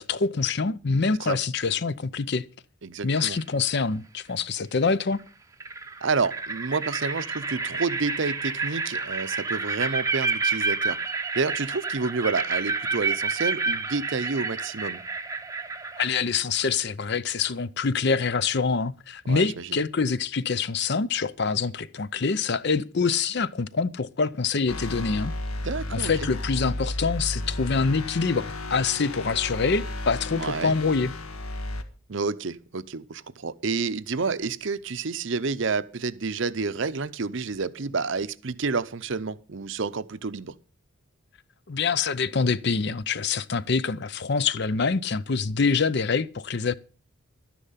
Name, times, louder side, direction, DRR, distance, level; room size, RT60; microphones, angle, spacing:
voice 1, 0.0-2.4 3.0-5.2 16.0-25.3 25.9-31.1 41.7-46.8, left 5 dB, 50° left, 0.6 m, -25 dB
voice 2, 2.8-3.4 6.0-11.0 11.3-15.0 19.3-19.8 25.6-26.3 30.4-30.7 32.1-40.5, right 4 dB, 60° right, 0.7 m, -29 dB
sound 1, 3.2-3.6 5.1-5.2 5.6-16.1, right 4 dB, 15° right, 0.7 m, -29 dB
sound 2, 24.7-31.8, left 1 dB, 85° left, 1.6 m, -33 dB
12.0 x 10.0 x 5.6 m
head